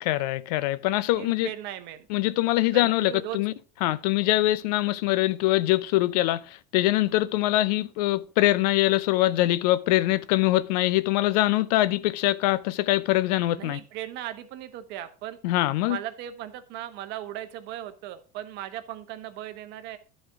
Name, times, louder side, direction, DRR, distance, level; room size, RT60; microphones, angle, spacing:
voice 1, 0.0-1.5 2.1-3.5 3.8-13.8 15.4-16.0, left 16 dB, 75° left, 0.6 m, -23 dB
voice 2, 1.2-2.1 2.7-3.4 13.6-15.4 15.9-20.0, right 12 dB, 55° right, 1.1 m, -37 dB
11.0 x 4.4 x 4.7 m
supercardioid pair, 110°, 21 cm